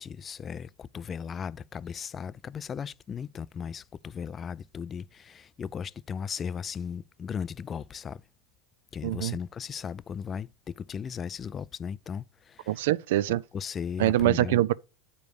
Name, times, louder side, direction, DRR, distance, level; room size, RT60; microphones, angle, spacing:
voice 1, 0.0-8.2 8.9-12.8 13.3-14.6, left 7 dB, 25° left, 0.3 m, -37 dB
voice 2, 9.0-9.4 12.7-13.4 14.0-14.7, right 14 dB, 75° right, 0.5 m, -24 dB
9.3 x 5.2 x 4.8 m
supercardioid pair, 135°, 0 cm